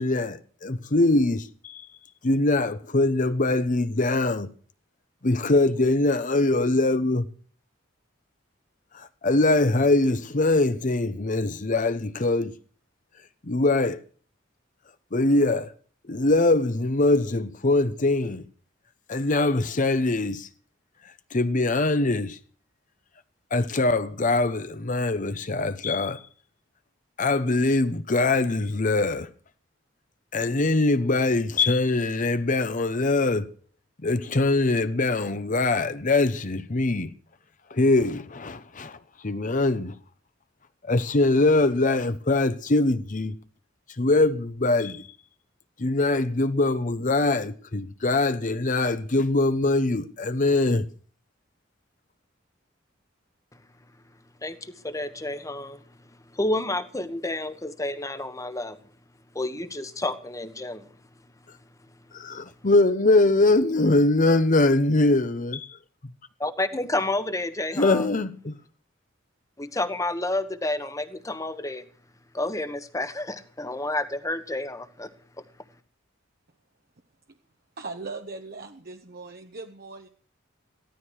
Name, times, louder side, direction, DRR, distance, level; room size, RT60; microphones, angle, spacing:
voice 1, 0.0-1.8 2.2-4.5 5.2-7.3 8.9-12.5 13.4-14.0 15.1-15.7 16.1-18.4 19.1-20.5 21.3-22.4 23.5-26.2 27.2-29.3 30.3-33.5 34.0-37.1 37.7-39.0 39.2-39.9 40.9-43.3 44.0-45.1 45.8-50.8 62.1-65.8 67.7-68.5, left 2 dB, 40° left, 0.8 m, -22 dB
voice 2, 54.4-55.8 56.3-58.8 59.3-60.8 66.4-68.1 69.6-71.8 72.3-75.1, left 2 dB, 15° left, 1.2 m, -30 dB
voice 3, 77.8-80.1, right 3 dB, 50° right, 1.1 m, -39 dB
16.0 x 13.0 x 6.4 m
head